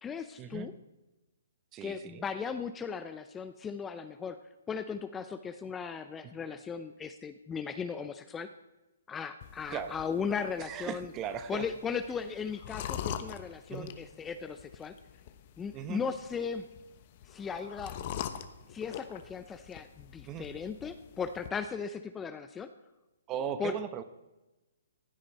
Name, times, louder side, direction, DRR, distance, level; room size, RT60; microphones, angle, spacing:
voice 1, 0.0-0.7 1.8-4.4 4.7-8.5 9.1-11.1 11.5-14.9 15.6-16.7 17.3-18.0 18.7-22.7 23.6-23.8, left 6 dB, 15° left, 10 dB, 0.6 m, -37 dB
voice 2, 1.7-2.2 6.2-6.3 9.7-10.0 10.6-11.6 13.7-13.9 15.7-16.0 20.3-20.5 23.3-24.0, right 8 dB, 25° right, 11 dB, 0.9 m, -38 dB
sound 1, 9.4-21.5, left 10 dB, 45° left, 1.0 m, -44 dB
16.0 x 9.7 x 4.1 m, 1.0 s
hypercardioid pair, 140°, 0 cm